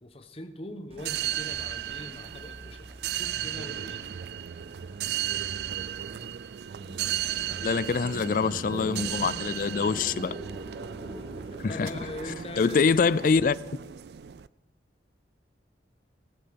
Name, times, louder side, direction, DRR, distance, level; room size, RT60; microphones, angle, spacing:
voice 1, 0.0-4.1 9.2-9.3 11.7-13.1, left 1 dB, 35° left, 1.1 m, -42 dB
sound 1, 0.9-6.5 7.4-13.8, right 1 dB, 35° right, 1.2 m, -51 dB
sound 2, 1.0-14.5, right 10 dB, 65° right, 0.4 m, -35 dB
sound 3, 6.8-12.4, equal, 10° right, 3.4 m, -42 dB
voice 2, 7.6-10.4 11.6-11.9 12.6-13.6, left 5 dB, 50° left, 0.4 m, -24 dB
18.5 x 6.6 x 6.9 m
head